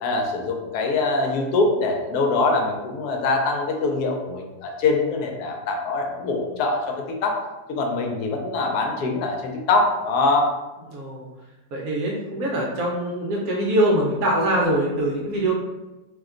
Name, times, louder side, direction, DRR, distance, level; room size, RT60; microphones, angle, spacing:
voice 1, 0.0-7.4 7.7-10.5, left 3 dB, 75° left, 2 dB, 1.1 m, -23 dB
voice 2, 10.9-11.3 11.7-15.5, right 1 dB, 70° right, -3 dB, 1.0 m, -23 dB
2.8 x 2.2 x 3.6 m, 1.1 s
omnidirectional pair, 1.7 m